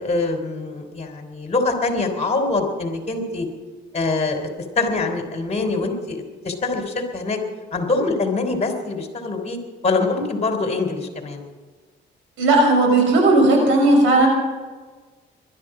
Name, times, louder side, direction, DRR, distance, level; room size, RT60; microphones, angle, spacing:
voice 1, 0.0-3.5 3.9-4.5 4.8-7.4 7.7-9.6 9.8-11.4, left 3 dB, 35° left, 5 dB, 3.4 m, -24 dB
voice 2, 12.4-14.3, right 2 dB, 85° right, 2 dB, 5.8 m, -15 dB
20.5 x 12.5 x 4.9 m, 1.4 s
cardioid pair, 90°, 20 cm